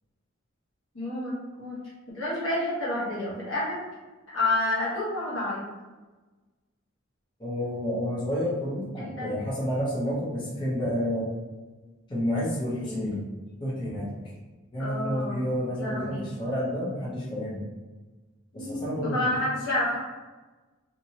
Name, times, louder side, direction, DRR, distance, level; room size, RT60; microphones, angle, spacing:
voice 1, 0.9-1.8 2.1-3.8 4.3-5.7 9.0-9.3 12.8-13.1 14.8-16.2 18.5-20.0, left 1 dB, 75° left, -7 dB, 1.2 m, -29 dB
voice 2, 7.4-11.3 12.1-13.2 13.6-14.3 14.7-17.6 18.5-19.2, equal, 25° left, -7 dB, 0.7 m, -30 dB
2.7 x 2.6 x 2.8 m, 1.2 s
head